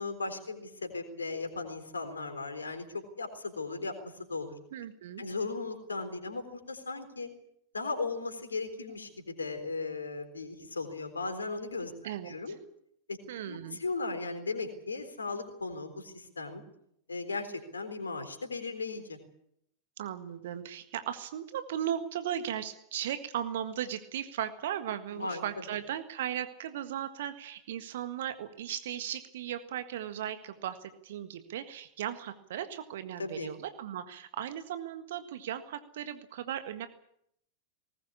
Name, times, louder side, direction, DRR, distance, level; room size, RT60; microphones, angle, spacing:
voice 1, 0.0-4.6 5.2-7.3 7.7-11.9 12.3-12.6 13.1-13.2 13.5-16.6 17.1-19.2 25.1-25.4 33.2-33.5, left 3 dB, 75° left, 8 dB, 3.9 m, -37 dB
voice 2, 4.7-5.2 12.0-12.6 13.3-13.8 20.0-36.9, right 10 dB, 55° right, 10 dB, 1.7 m, -37 dB
20.0 x 19.5 x 8.6 m, 0.73 s
figure-of-eight pair, 90°, 0 cm